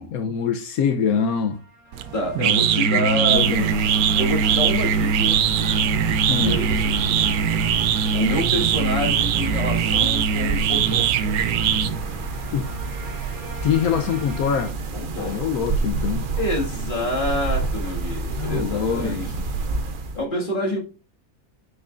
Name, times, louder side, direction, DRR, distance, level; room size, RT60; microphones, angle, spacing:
voice 1, 0.1-1.6 2.5-3.8 6.3-6.6 12.5-12.7 13.6-14.7 15.2-16.3 18.3-19.2, left 7 dB, 75° left, 1.1 m, -24 dB
sound 1, 1.3-14.7, right 1 dB, 15° right, 3.8 m, -43 dB
sound 2, 1.9-12.3, right 7 dB, 80° right, 1.1 m, -21 dB
voice 2, 2.1-3.5 4.1-5.4 6.4-7.4 8.1-11.1 14.9-15.4 16.4-19.3 20.1-20.8, left 1 dB, 35° left, 2.1 m, -27 dB
sound 3, 3.3-20.2, right 3 dB, 45° right, 0.8 m, -29 dB
9.4 x 6.2 x 2.5 m
omnidirectional pair, 1.5 m